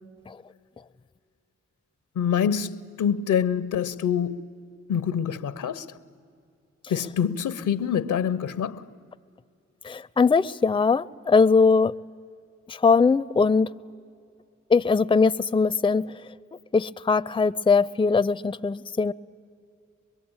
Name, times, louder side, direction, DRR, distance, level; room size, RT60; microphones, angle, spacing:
voice 1, 2.2-4.5 4.9-5.9 6.9-8.8, left 8 dB, 80° left, 0.8 m, -26 dB
voice 2, 9.8-12.0 12.7-13.7 14.7-16.2 16.7-19.1, left 4 dB, 15° left, 0.5 m, -21 dB
24.0 x 22.0 x 8.8 m
supercardioid pair, 45°, 30 cm